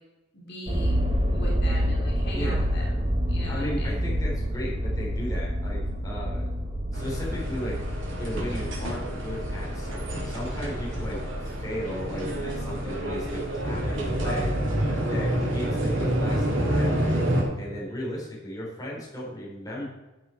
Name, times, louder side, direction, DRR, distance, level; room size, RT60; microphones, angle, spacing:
voice 1, 0.3-1.0 1.3-4.0, left 1 dB, 60° left, -3 dB, 3.4 m, -40 dB
sound 1, 0.7-14.8 15.4-15.5, equal, 30° right, 1.5 m, -29 dB
voice 2, 2.3-2.7 3.5-6.6 6.9-7.8 8.2-14.5 15.1-17.2 17.6-19.8, equal, 20° left, -5 dB, 3.8 m, -35 dB
sound 2, 6.9-17.4, right 1 dB, 80° right, 3.0 m, -28 dB
12.5 x 7.6 x 4.5 m, 1.1 s
head